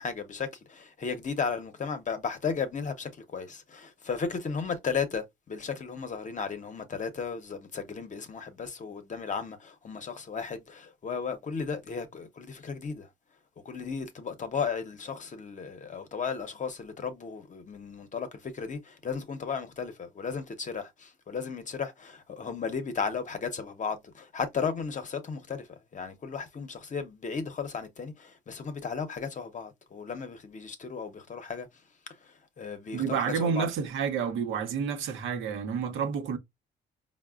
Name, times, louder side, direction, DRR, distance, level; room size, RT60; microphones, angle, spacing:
voice 1, 0.0-13.1 13.6-25.7 25.9-31.7 32.2-33.7, left 5 dB, 40° left, 0.7 m, -35 dB
voice 2, 32.9-36.4, right 6 dB, 85° right, 0.7 m, -29 dB
4.6 x 2.1 x 2.3 m
cardioid pair, 90°, 20 cm